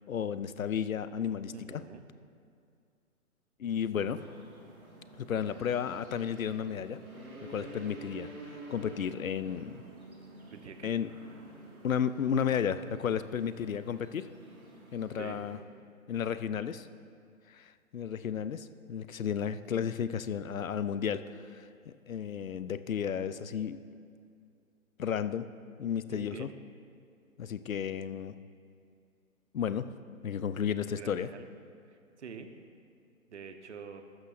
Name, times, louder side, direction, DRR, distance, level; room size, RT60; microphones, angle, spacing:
voice 1, 0.1-1.8 3.6-4.3 5.2-7.0 7.5-9.8 10.8-11.1 11.8-14.3 14.9-15.6 16.1-16.9 17.5-23.8 25.0-25.5 25.8-26.5 27.4-28.3 29.5-29.9 30.2-31.3, left 8 dB, 70° left, 14 dB, 0.6 m, -33 dB
voice 2, 1.5-2.0 10.5-10.9 15.2-15.4 26.1-26.5 30.9-31.5 31.9-32.5 33.3-34.0, right 6 dB, 55° right, 7 dB, 1.0 m, -46 dB
sound 1, 4.0-15.6, right 2 dB, 90° right, 1.9 m, -50 dB
14.5 x 12.5 x 2.5 m, 2.4 s
figure-of-eight pair, 130°, 42 cm